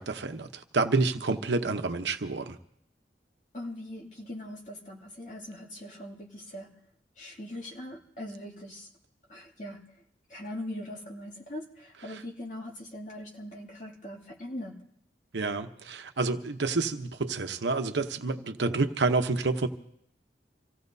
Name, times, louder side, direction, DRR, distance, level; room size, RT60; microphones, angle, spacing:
voice 1, 0.0-2.6 15.3-19.7, right 3 dB, 85° right, 0.9 m, -28 dB
voice 2, 3.5-6.7 7.2-8.9 9.3-9.8 10.3-14.8, left 1 dB, 45° left, 2.5 m, -41 dB
27.0 x 16.5 x 2.7 m
head